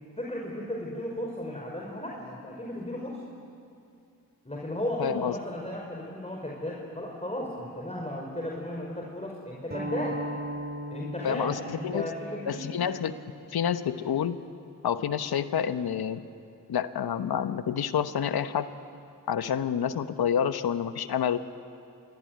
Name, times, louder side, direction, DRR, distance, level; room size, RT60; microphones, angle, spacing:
voice 1, 0.2-3.2 4.5-10.2 10.9-12.7, left 1 dB, 15° left, -2 dB, 5.3 m, -35 dB
voice 2, 5.0-5.4 11.2-12.1 12.5-13.2 13.5-14.4 14.8-16.2 16.7-18.7 19.3-21.4, left 8 dB, 80° left, 11 dB, 1.2 m, -28 dB
sound 1, 9.7-14.9, equal, 25° right, 4.1 m, -39 dB
26.5 x 21.5 x 9.4 m, 2.5 s
supercardioid pair, 40°, 37 cm